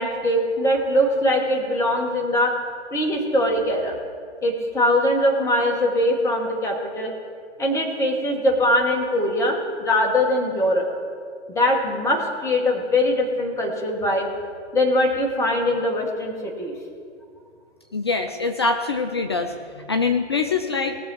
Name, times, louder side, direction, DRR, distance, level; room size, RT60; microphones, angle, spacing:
voice 1, 0.0-2.5 2.9-3.9 4.4-7.1 7.6-10.9 11.5-14.3 14.7-16.7, left 1 dB, 10° left, 1 dB, 1.4 m, -22 dB
voice 2, 17.9-21.0, left 4 dB, 25° left, 6 dB, 0.4 m, -24 dB
19.5 x 6.8 x 4.6 m, 2.2 s
hypercardioid pair, 135°, 36 cm